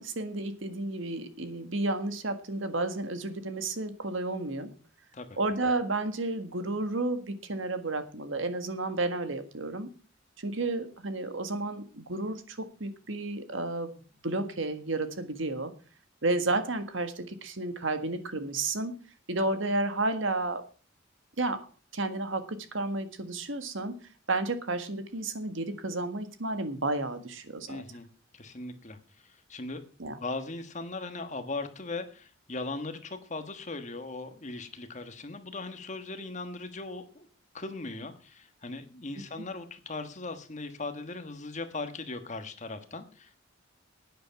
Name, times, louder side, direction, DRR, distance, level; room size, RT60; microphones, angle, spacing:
voice 1, 0.0-4.7 5.4-9.9 10.4-13.9 14.2-15.7 16.2-18.9 19.3-20.6 21.4-21.7 21.9-24.0 24.3-27.8 30.0-30.2 39.4-39.5, right 2 dB, 70° right, 9 dB, 1.7 m, -32 dB
voice 2, 27.7-28.1 28.3-29.0 29.2-29.8 30.2-37.3 37.5-43.4, left 3 dB, 35° left, 8 dB, 1.3 m, -39 dB
11.0 x 9.3 x 5.8 m, 0.38 s
head